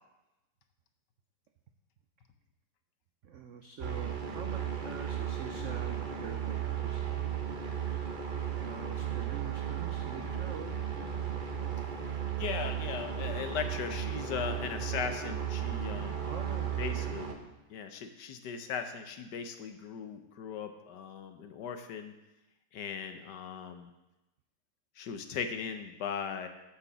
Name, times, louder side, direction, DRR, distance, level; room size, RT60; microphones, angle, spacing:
voice 1, 3.2-7.0 8.5-11.1 16.3-17.5, right 7 dB, 80° right, 5 dB, 0.6 m, -45 dB
sound 1, 3.8-17.3, right 8 dB, 40° right, 0.7 m, -35 dB
voice 2, 12.4-16.3 16.8-17.3 17.7-22.1 22.7-23.9 25.0-26.5, left 7 dB, 70° left, 7 dB, 1.3 m, -38 dB
8.8 x 6.1 x 6.8 m, 0.98 s
omnidirectional pair, 2.0 m